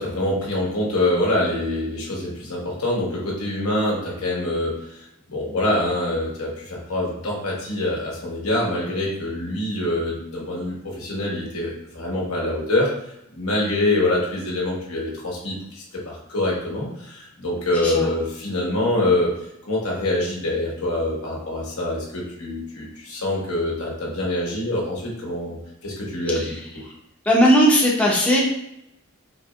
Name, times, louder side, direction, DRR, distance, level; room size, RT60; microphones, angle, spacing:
voice 1, 0.0-5.0 5.3-12.9 13.3-19.3 19.6-25.6 25.8-26.5, left 1 dB, 90° left, -3 dB, 1.3 m, -25 dB
voice 2, 27.2-28.4, equal, 5° left, -4 dB, 0.6 m, -17 dB
4.4 x 3.1 x 2.3 m, 0.81 s
head